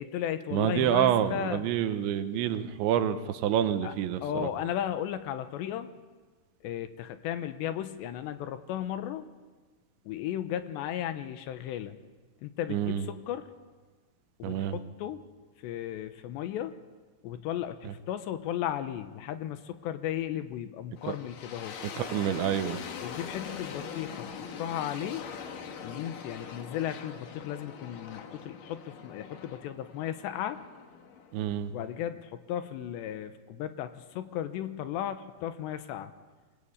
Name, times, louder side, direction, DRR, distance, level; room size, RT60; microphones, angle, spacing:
voice 1, 0.0-1.6 3.8-3.9 4.2-5.9 6.6-9.2 10.1-12.0 12.4-13.5 14.4-15.2 15.6-16.7 17.2-21.8 23.0-25.2 25.8-30.6 31.7-36.1, left 11 dB, 80° left, 10 dB, 3.1 m, -35 dB
voice 2, 0.5-4.5 12.7-13.0 14.4-14.7 17.9-18.0 21.1-21.2 22.0-22.8 31.3-31.7, right 10 dB, 85° right, 10 dB, 3.4 m, -28 dB
sound 1, 21.0-31.9, left 6 dB, 55° left, 2.8 m, -42 dB
24.5 x 20.0 x 8.7 m, 1.4 s
omnidirectional pair, 5.2 m